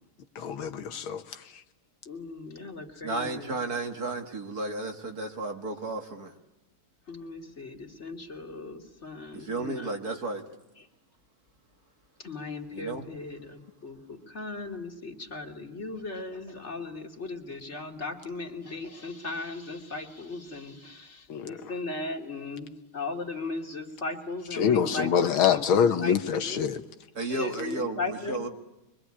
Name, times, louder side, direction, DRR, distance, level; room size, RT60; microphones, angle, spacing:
voice 1, 0.4-1.4 21.3-21.5 24.5-26.8, left 7 dB, 75° left, 2.0 m, -25 dB
voice 2, 2.1-3.6 7.1-10.2 12.2-26.6 27.3-28.5, left 3 dB, 30° left, 2.7 m, -37 dB
voice 3, 3.0-6.3 9.3-10.4 12.7-13.0 27.2-28.5, right 2 dB, 45° right, 2.5 m, -33 dB
24.5 x 24.0 x 9.9 m
omnidirectional pair, 2.4 m